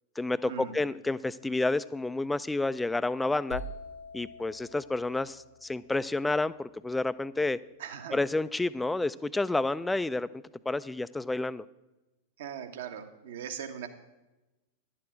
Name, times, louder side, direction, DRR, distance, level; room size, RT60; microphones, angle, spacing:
voice 1, 0.2-3.6 4.1-7.6 8.1-10.3 10.7-11.6, left 2 dB, 5° left, 16 dB, 0.3 m, -30 dB
sound 1, 3.5-7.3, left 2 dB, 80° left, 1.1 m, -45 dB
voice 2, 7.8-8.2 12.4-13.9, right 8 dB, 55° right, 7 dB, 1.1 m, -39 dB
11.0 x 8.9 x 4.9 m, 1.0 s
figure-of-eight pair, 90°, 0 cm